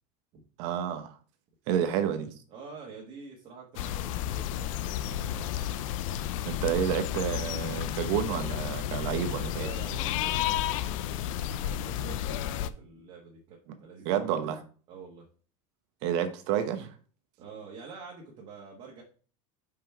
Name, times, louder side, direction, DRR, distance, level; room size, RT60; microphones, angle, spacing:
voice 1, 0.6-1.1 1.7-2.3 6.4-9.7 14.0-14.6 16.0-16.9, right 9 dB, 55° right, 0.9 m, -29 dB
voice 2, 2.5-5.8 9.5-14.6 14.9-15.3 17.4-19.0, right 5 dB, 35° right, 1.5 m, -47 dB
sound 1, 3.8-12.7, left 11 dB, 75° left, 0.6 m, -32 dB
5.8 x 5.2 x 4.5 m
supercardioid pair, 165°, 17 cm